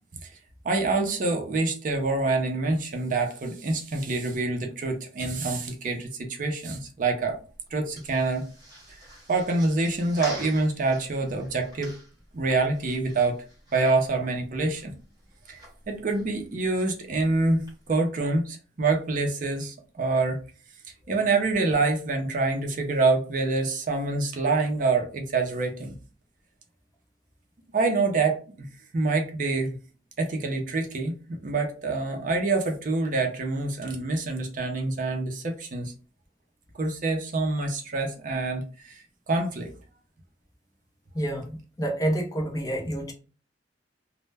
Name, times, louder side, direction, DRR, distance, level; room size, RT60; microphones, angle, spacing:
voice 1, 0.6-7.4 7.7-8.5 9.3-11.9 12.3-13.4 13.7-14.9 15.5-15.6 15.9-20.4 21.1-25.9 27.7-28.7 28.9-29.8 30.2-31.1 31.4-35.9 36.7-39.7, right 3 dB, 45° right, 0.5 m, -26 dB
sound 1, 7.3-18.0, equal, 20° right, 1.0 m, -47 dB
voice 2, 41.1-43.1, right 1 dB, 20° left, 0.5 m, -28 dB
2.1 x 2.0 x 3.2 m
head